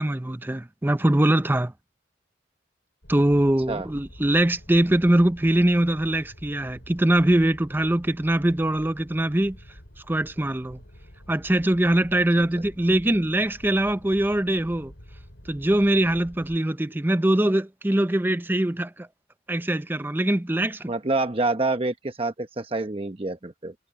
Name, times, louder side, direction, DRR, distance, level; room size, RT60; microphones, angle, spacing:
voice 1, 0.0-1.7 3.1-9.6 10.1-10.8 11.3-14.9 15.5-19.1 19.5-20.9, right 1 dB, 10° right, 0.5 m, -22 dB
sound 1, 3.0-16.6, equal, 70° left, 6.1 m, -47 dB
voice 2, 20.9-23.7, right 2 dB, 30° right, 0.9 m, -27 dB
head